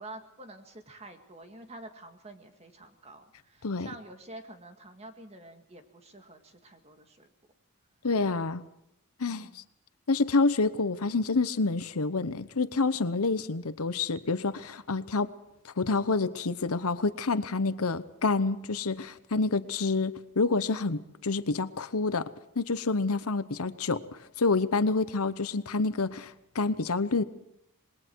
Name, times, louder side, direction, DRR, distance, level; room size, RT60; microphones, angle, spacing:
voice 1, 0.0-7.3 9.3-9.6, right 2 dB, 30° right, 6 dB, 2.0 m, -48 dB
voice 2, 8.0-8.6 9.2-9.6 10.1-15.3 15.8-22.2 22.6-24.0 24.4-27.2, left 3 dB, 80° left, 13 dB, 0.9 m, -28 dB
27.0 x 20.5 x 4.7 m, 0.82 s
head